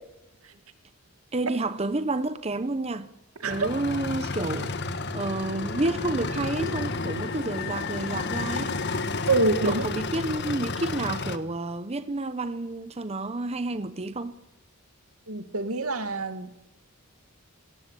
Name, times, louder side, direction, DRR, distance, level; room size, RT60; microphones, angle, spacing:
voice 1, 1.3-3.1 3.5-4.7 5.1-8.8 9.6-14.4, right 2 dB, 30° right, 0.9 m, -30 dB
sound 1, 3.5-11.4, left 3 dB, 50° left, 1.5 m, -31 dB
voice 2, 9.3-9.9 15.3-16.6, right 3 dB, 85° right, 2.3 m, -26 dB
26.5 x 18.0 x 8.4 m
head